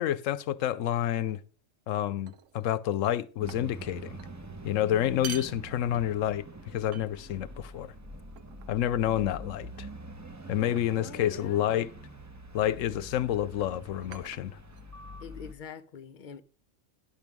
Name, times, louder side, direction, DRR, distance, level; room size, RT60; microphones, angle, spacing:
voice 1, 0.0-1.4 1.9-4.2 4.6-6.4 6.7-7.9 8.7-9.9 10.5-11.9 12.5-14.5, left 11 dB, 85° left, 1.0 m, -29 dB
sound 1, 1.1-1.5 2.3-2.7 3.0-3.9 4.2-4.4 5.0-6.4 6.9-7.5 8.4-8.8 9.8-10.1 10.8-11.2 12.3-12.5 13.5-15.2, right 9 dB, 80° right, 1.0 m, -47 dB
sound 2, 3.4-15.5, right 1 dB, 20° right, 0.6 m, -45 dB
voice 2, 10.6-11.7 15.2-16.4, left 6 dB, 50° left, 0.7 m, -45 dB
10.5 x 6.0 x 5.2 m
omnidirectional pair, 1.3 m